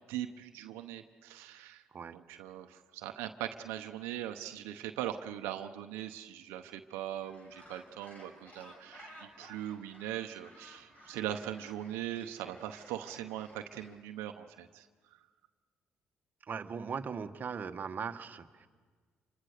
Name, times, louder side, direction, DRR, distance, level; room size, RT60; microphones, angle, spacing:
voice 1, 0.1-1.8 2.1-14.9, right 11 dB, 85° right, 6 dB, 0.9 m, -40 dB
Gull seagull, 7.2-13.9, equal, 35° left, 7.9 m, -56 dB
voice 2, 16.5-18.7, right 6 dB, 45° right, 8 dB, 1.3 m, -39 dB
27.5 x 24.5 x 6.6 m, 1.5 s
supercardioid pair, 65°, 4 cm